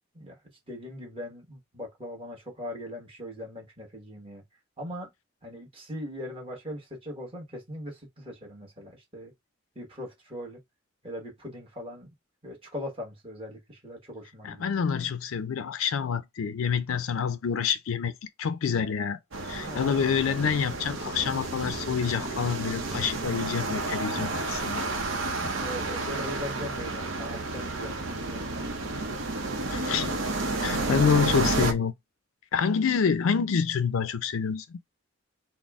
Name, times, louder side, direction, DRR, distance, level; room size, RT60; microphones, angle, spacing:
voice 1, 0.7-4.4 4.8-5.1 5.4-9.3 9.7-10.6 11.0-12.1 12.4-14.7 19.6-20.0 25.6-29.3, left 1 dB, 25° right, 1.2 m, -40 dB
voice 2, 14.4-18.1 18.4-19.2 19.5-24.9 29.7-30.2 30.6-31.9 32.5-34.8, left 6 dB, 80° left, 0.4 m, -27 dB
sound 1, 19.3-31.7, right 2 dB, 75° right, 0.7 m, -31 dB
sound 2, 20.3-21.1 21.6-22.4 22.9-23.7 24.1-25.0 25.4-26.0, equal, ahead, 0.4 m, -44 dB
4.1 x 2.1 x 3.5 m
head